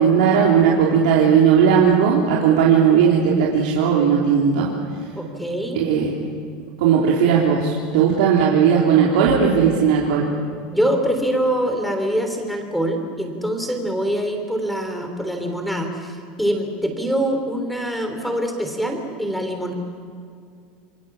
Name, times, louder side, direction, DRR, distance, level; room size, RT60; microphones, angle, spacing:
voice 1, 0.0-4.7 5.7-6.1 6.8-10.3, right 7 dB, 80° right, -3 dB, 3.5 m, -17 dB
voice 2, 5.1-5.8 10.7-19.7, equal, ahead, 4 dB, 3.4 m, -24 dB
28.0 x 22.5 x 7.4 m, 2.3 s
supercardioid pair, 150°, 4 cm